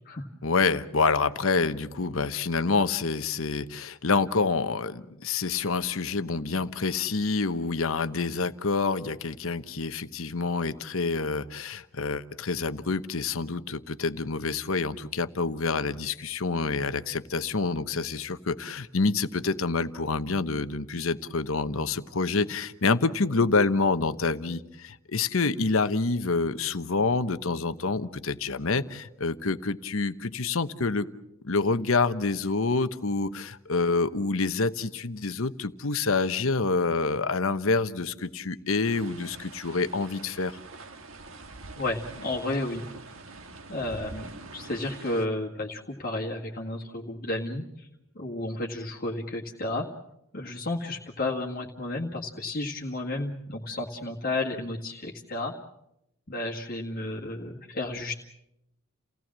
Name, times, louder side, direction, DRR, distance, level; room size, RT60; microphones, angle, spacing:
voice 1, 0.4-31.1 31.4-40.6, left 4 dB, 70° left, 11 dB, 1.0 m, -27 dB
sound 1, 38.8-45.3, right 3 dB, 65° right, 1.7 m, -44 dB
voice 2, 41.8-42.9 43.7-47.9 48.2-49.9 50.3-55.5 56.3-58.1, left 2 dB, 45° left, -2 dB, 1.8 m, -32 dB
29.5 x 17.5 x 7.5 m, 0.85 s
head